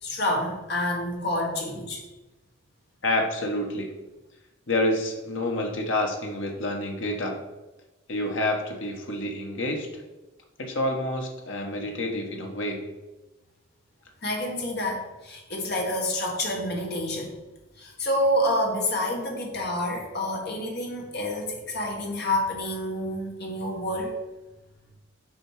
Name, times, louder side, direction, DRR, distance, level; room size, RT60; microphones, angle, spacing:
voice 1, 0.0-2.0 14.2-17.4 17.8-24.1, left 1 dB, 50° left, 0 dB, 1.6 m, -28 dB
voice 2, 3.0-3.9 4.7-7.4 8.1-10.0 10.6-12.8, left 1 dB, 65° left, 2 dB, 1.3 m, -28 dB
6.2 x 5.0 x 4.9 m, 1.1 s
head